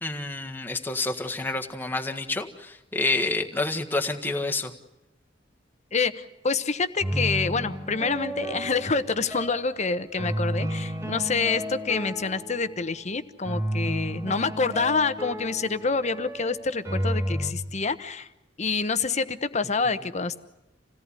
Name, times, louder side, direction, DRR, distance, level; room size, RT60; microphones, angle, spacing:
voice 1, 0.0-4.7, left 2 dB, 10° left, 3 dB, 1.7 m, -28 dB
voice 2, 5.9-18.3 18.6-20.4, left 4 dB, 40° left, 12 dB, 1.1 m, -27 dB
sound 1, 7.0-9.7 10.2-12.8 13.4-17.5, equal, 15° right, 2.0 m, -32 dB
27.5 x 17.5 x 9.8 m, 0.93 s
head